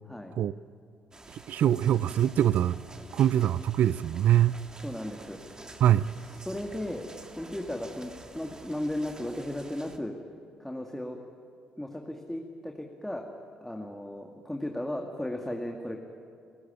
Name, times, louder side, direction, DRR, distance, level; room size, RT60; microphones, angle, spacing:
sound 1, 1.1-10.0, right 2 dB, 25° right, 2.4 m, -49 dB
voice 1, 1.5-2.8 3.1-4.6 5.8-6.1, right 11 dB, 60° right, 20 dB, 0.6 m, -23 dB
voice 2, 4.8-5.4 6.4-7.1 7.4-10.1 10.6-11.2 11.8-13.3 13.6-16.0, left 1 dB, 5° left, 2 dB, 2.3 m, -35 dB
29.0 x 16.0 x 9.2 m, 2.4 s
hypercardioid pair, 50°, 3 cm